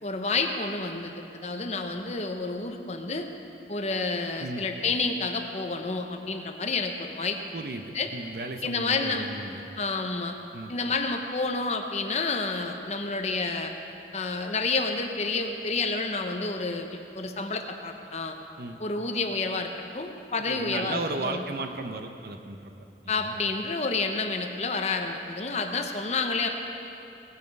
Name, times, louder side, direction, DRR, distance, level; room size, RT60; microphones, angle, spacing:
voice 1, 0.0-3.3 3.7-7.4 7.9-8.1 8.6-9.3 9.8-10.3 10.7-13.7 14.1-18.4 18.8-21.4 23.1-26.5, left 3 dB, 35° left, 4 dB, 0.9 m, -29 dB
voice 2, 7.5-9.6 10.5-10.7 18.6-18.8 20.4-22.7 23.0-23.4, right 2 dB, 55° right, 6 dB, 0.8 m, -35 dB
19.0 x 8.4 x 5.4 m, 2.8 s
head